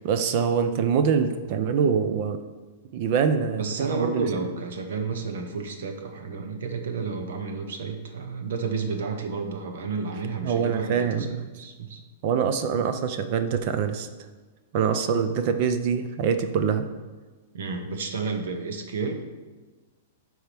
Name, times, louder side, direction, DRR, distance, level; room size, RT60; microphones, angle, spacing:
voice 1, 0.0-2.4 2.9-3.6 3.9-4.2 10.4-11.3 12.2-14.1 14.7-16.9, right 6 dB, 30° right, 9 dB, 0.5 m, -24 dB
voice 2, 3.6-12.0 17.5-19.1, right 4 dB, 60° right, 5 dB, 1.1 m, -31 dB
11.5 x 4.6 x 3.5 m, 1.3 s
supercardioid pair, 180°, 0 cm